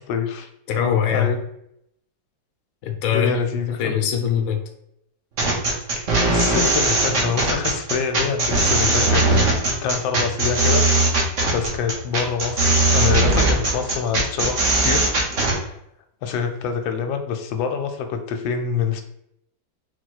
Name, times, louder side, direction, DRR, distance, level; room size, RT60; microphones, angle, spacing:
voice 1, 0.1-0.5 1.1-1.4 3.1-3.9 6.0-9.5 9.8-10.8 11.5-15.1 15.6-15.8 16.2-19.0, left 6 dB, 85° left, 6 dB, 1.3 m, -26 dB
voice 2, 0.7-1.3 2.8-3.4 3.8-4.6, left 8 dB, 65° left, 3 dB, 0.9 m, -22 dB
sound 1, 5.4-15.6, right 2 dB, 50° right, 1.1 m, -19 dB
4.3 x 2.2 x 4.5 m, 0.77 s
omnidirectional pair, 2.1 m